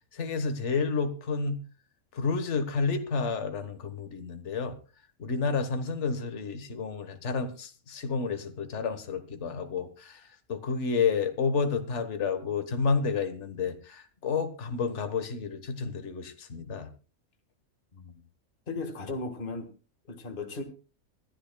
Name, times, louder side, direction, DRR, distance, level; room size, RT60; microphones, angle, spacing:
voice 1, 0.1-1.6 2.1-4.7 5.2-10.2 10.5-16.9, left 5 dB, 55° left, 8 dB, 1.7 m, -30 dB
voice 2, 18.7-19.7 20.1-20.6, left 3 dB, 40° left, 6 dB, 1.8 m, -36 dB
24.0 x 12.0 x 2.3 m, 0.35 s
omnidirectional pair, 1.5 m